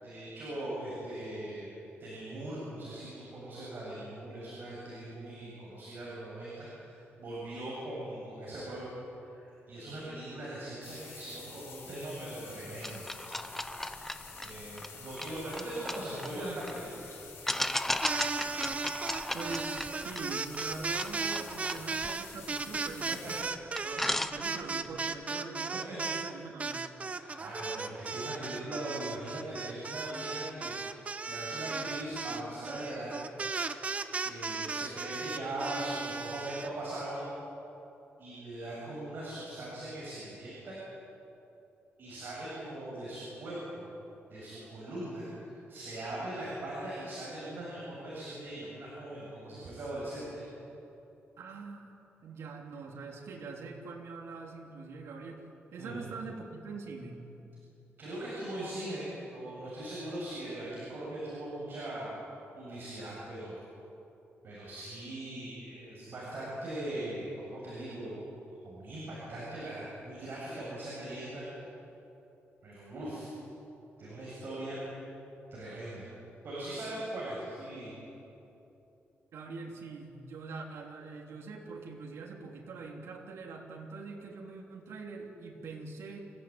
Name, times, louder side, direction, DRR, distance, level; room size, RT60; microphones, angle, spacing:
voice 1, 0.0-1.7 2.0-8.8 9.2-13.0 14.4-17.1 26.3-26.5 27.1-30.8 31.3-33.1 34.2-37.2 38.2-40.8 42.0-43.9 44.3-50.3 55.8-56.1 58.0-62.3 62.5-63.6 64.4-68.2 68.6-71.5 72.6-73.3 74.0-74.8 75.5-76.0 76.4-77.9, right 1 dB, 50° right, -6 dB, 7.6 m, -40 dB
sound 1, 10.8-23.4, left 5 dB, 60° left, 6.9 m, -49 dB
sound 2, 12.8-16.8 17.5-23.1 23.4-23.5 23.8-24.9, left 1 dB, 5° left, 0.9 m, -36 dB
sound 3, 17.9-26.3 26.6-36.7, right 4 dB, 30° right, 1.0 m, -36 dB
voice 2, 19.3-23.5 23.8-26.9 51.4-51.9 52.2-57.3 79.3-86.3, right 4 dB, 80° right, -1 dB, 3.1 m, -43 dB
29.0 x 15.5 x 9.1 m, 2.9 s
wide cardioid pair, 150°, 5 cm